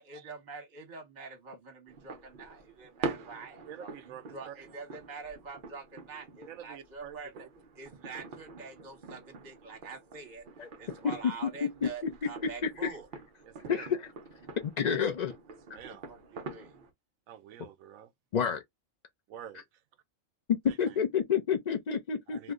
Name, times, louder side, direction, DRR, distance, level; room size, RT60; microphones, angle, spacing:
voice 1, 0.0-7.5 7.7-10.5 10.8-13.1 15.9-16.9, right 4 dB, 35° right, 1.1 m, -46 dB
sound 1, 1.9-16.9, right 4 dB, 50° right, 0.6 m, -45 dB
voice 2, 3.7-4.5 6.5-7.5 13.5-13.8 15.7-16.1 17.3-18.1 19.3-19.6 20.7-20.9 22.3-22.5, right 9 dB, 80° right, 1.0 m, -47 dB
voice 3, 11.6-12.9 13.7-13.9 14.6-15.3 15.7-15.8 18.3-18.6 20.6-22.5, left 6 dB, 70° left, 0.4 m, -30 dB
2.7 x 2.1 x 3.6 m
omnidirectional pair, 1.4 m